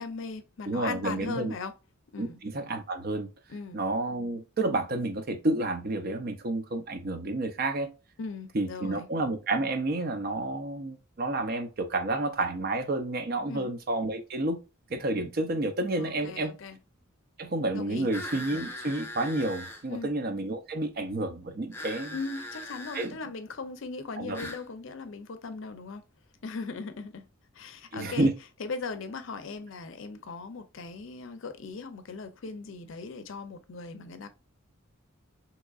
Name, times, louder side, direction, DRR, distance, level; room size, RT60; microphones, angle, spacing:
voice 1, 0.0-1.7 2.1-2.4 3.5-3.8 8.2-9.1 13.5-13.7 16.0-16.8 17.7-18.1 19.9-20.1 22.1-26.0 26.4-27.3 27.5-28.3 28.6-34.3, left 4 dB, 60° left, 0.5 m, -38 dB
voice 2, 0.7-1.5 2.2-3.3 3.7-7.9 8.5-14.6 14.9-16.5 17.4-22.2 22.9-23.2 24.2-24.5 27.9-28.3, right 2 dB, 45° right, 0.5 m, -30 dB
sound 1, 18.1-19.8 21.7-23.1 24.3-24.6, left 1 dB, 10° left, 0.4 m, -40 dB
3.6 x 2.9 x 2.3 m
head